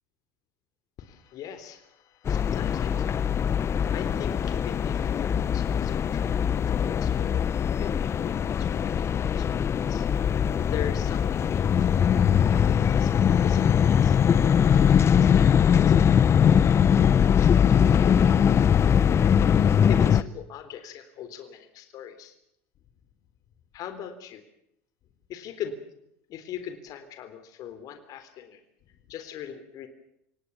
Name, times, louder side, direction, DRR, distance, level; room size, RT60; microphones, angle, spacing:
voice 1, 1.0-7.5 7.7-10.1 10.6-13.1 13.4-16.5 17.3-18.4 19.2-22.3 23.7-24.4 25.3-25.8 26.3-29.9, left 9 dB, 55° left, 9 dB, 3.8 m, -41 dB
sound 1, 2.3-20.2, left 8 dB, 35° left, 1.0 m, -21 dB
27.0 x 19.0 x 7.3 m, 0.76 s
hypercardioid pair, 80°, 7 cm